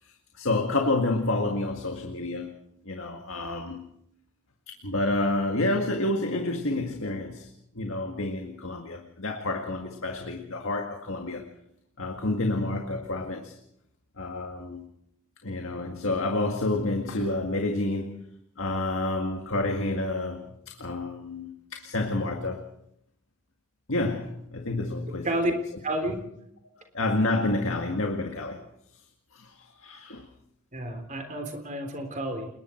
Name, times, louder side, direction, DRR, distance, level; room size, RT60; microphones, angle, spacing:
voice 1, 0.0-2.5 2.8-3.9 4.7-11.5 12.0-13.6 14.2-14.9 15.4-18.2 18.6-22.6 23.9-25.5 26.9-28.6 29.3-30.3, left 2 dB, 60° left, 3 dB, 2.0 m, -29 dB
voice 2, 25.8-26.2 30.7-32.5, right 1 dB, 35° right, 5 dB, 3.6 m, -30 dB
29.5 x 20.0 x 4.5 m, 0.75 s
head